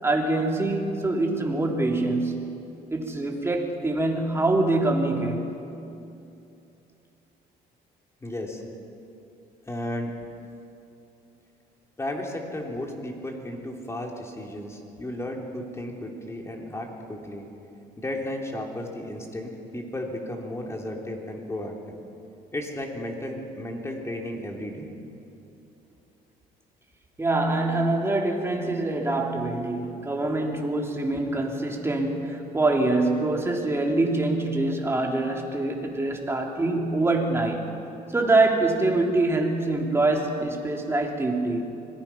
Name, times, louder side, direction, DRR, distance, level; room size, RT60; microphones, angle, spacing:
voice 1, 0.0-5.5 27.2-37.7 38.1-41.7, right 2 dB, 15° right, 1 dB, 3.1 m, -25 dB
voice 2, 8.2-8.6 9.7-10.1 12.0-17.4 18.0-22.0 22.5-24.9, left 1 dB, 15° left, 1 dB, 3.3 m, -34 dB
25.5 x 19.5 x 5.8 m, 2.8 s
cardioid pair, 110°, 17 cm